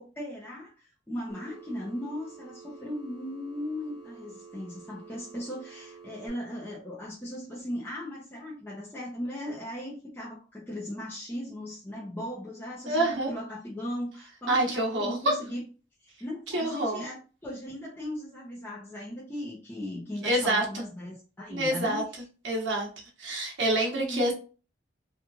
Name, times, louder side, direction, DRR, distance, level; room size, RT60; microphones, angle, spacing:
voice 1, 0.0-15.6 16.0-22.0 23.9-24.3, left 1 dB, 10° left, -6 dB, 0.6 m, -38 dB
Telephone, 1.3-6.3, right 5 dB, 70° left, 1.2 m, -49 dB
voice 2, 12.9-13.3 14.5-15.2 16.5-17.0 20.2-20.8 21.5-22.0 22.4-22.9 23.2-24.3, right 1 dB, 70° right, -1 dB, 1.0 m, -27 dB
3.0 x 2.4 x 2.3 m, 0.36 s
head